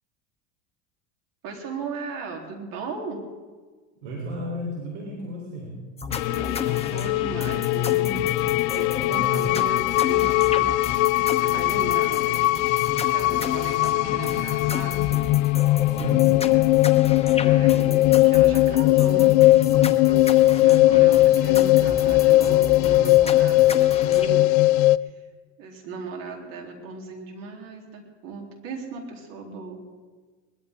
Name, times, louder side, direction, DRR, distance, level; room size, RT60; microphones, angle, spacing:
voice 1, 1.4-3.2 6.3-15.0 17.4-24.5 25.0-25.2 25.6-29.9, right 3 dB, 60° right, 1 dB, 3.6 m, -37 dB
voice 2, 4.0-5.7 15.9-16.4, equal, 75° right, -3 dB, 4.0 m, -34 dB
sound 1, 6.0-24.3, left 5 dB, 15° left, 1.0 m, -33 dB
sound 2, 6.1-25.0, left 17 dB, 70° left, 0.5 m, -19 dB
sound 3, 14.2-16.3, left 1 dB, 10° right, 2.6 m, -50 dB
20.5 x 13.5 x 3.7 m, 1.4 s
supercardioid pair, 100°, 38 cm